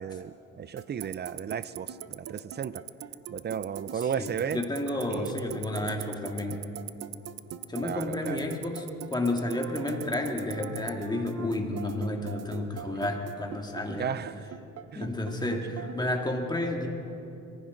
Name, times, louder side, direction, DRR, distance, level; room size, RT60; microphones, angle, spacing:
voice 1, 0.0-2.8 3.3-4.6 5.1-5.3 5.8-5.9 7.8-8.4 12.7-12.8 14.0-14.4 14.9-15.0, right 8 dB, 35° right, 16 dB, 0.5 m, -34 dB
sound 1, 0.8-16.4, right 8 dB, 55° right, 1.0 m, -42 dB
Tick-tock, 1.0-10.9, right 18 dB, 85° right, 0.5 m, -37 dB
voice 2, 4.2-6.7 7.7-14.1 14.9-16.9, left 1 dB, 15° left, 2 dB, 2.0 m, -31 dB
22.0 x 15.0 x 3.9 m, 2.7 s
cardioid pair, 90°, 30 cm